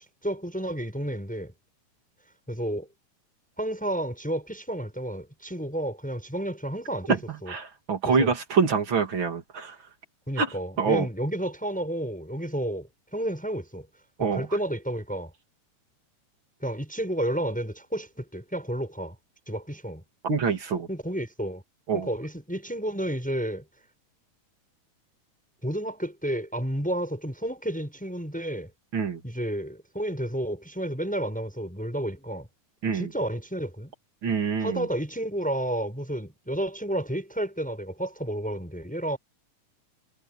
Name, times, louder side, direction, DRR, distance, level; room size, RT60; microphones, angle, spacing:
voice 1, 0.0-1.5 2.5-2.9 3.6-7.5 8.2-8.3 10.3-13.9 14.3-15.3 16.6-19.2 19.5-20.0 20.9-21.6 21.9-23.6 25.6-28.7 29.2-32.5 32.9-33.9 34.6-39.2, right 1 dB, ahead, 7.3 m, -31 dB
voice 2, 7.5-9.8 10.4-10.5 10.8-11.1 14.2-14.5 20.2-20.9 21.9-22.1 28.9-29.2 32.8-33.1 34.2-34.9, right 5 dB, 40° right, 3.4 m, -25 dB
omnidirectional pair, 3.6 m